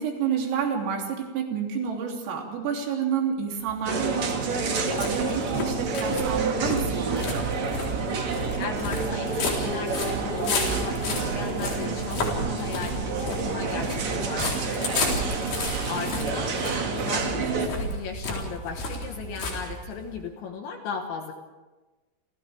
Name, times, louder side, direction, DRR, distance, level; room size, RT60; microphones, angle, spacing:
voice 1, 0.0-7.4 14.8-15.2, right 7 dB, 90° right, 0 dB, 5.8 m, -29 dB
sound 1, 3.7-20.2, left 1 dB, 50° left, 5.7 m, -32 dB
sound 2, 3.8-17.7, right 4 dB, 45° right, 2.5 m, -29 dB
voice 2, 8.6-15.0 15.9-21.3, left 5 dB, 70° left, 3 dB, 3.6 m, -36 dB
29.0 x 29.0 x 3.6 m, 1.2 s
omnidirectional pair, 5.8 m